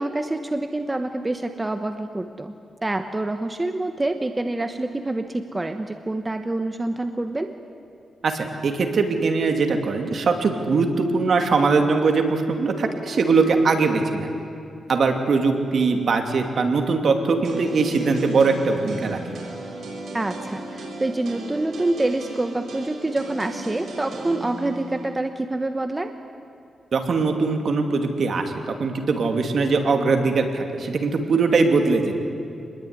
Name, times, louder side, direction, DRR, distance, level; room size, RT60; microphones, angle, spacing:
voice 1, 0.0-2.5 2.8-7.5 20.1-26.1, right 2 dB, 15° right, 7 dB, 1.1 m, -26 dB
voice 2, 8.2-14.3 14.9-19.2 26.9-32.1, right 4 dB, 60° right, 4 dB, 2.8 m, -21 dB
sound 1, 17.4-25.1, right 2 dB, 75° right, 6.7 m, -35 dB
26.5 x 21.0 x 9.7 m, 2.6 s
wide cardioid pair, 120°, 0 cm